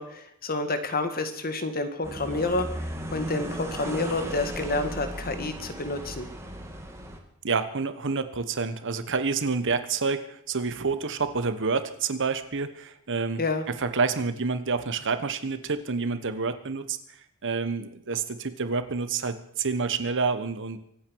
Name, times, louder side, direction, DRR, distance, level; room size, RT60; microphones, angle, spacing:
voice 1, 0.0-2.7 3.1-6.3 13.4-13.6, left 2 dB, 45° left, 8 dB, 1.8 m, -29 dB
sound 1, 2.0-7.2, right 1 dB, 10° right, 2.3 m, -36 dB
voice 2, 7.4-13.4 13.7-17.0 17.4-20.8, right 4 dB, 60° right, 11 dB, 1.2 m, -28 dB
24.5 x 9.2 x 6.3 m, 0.70 s
head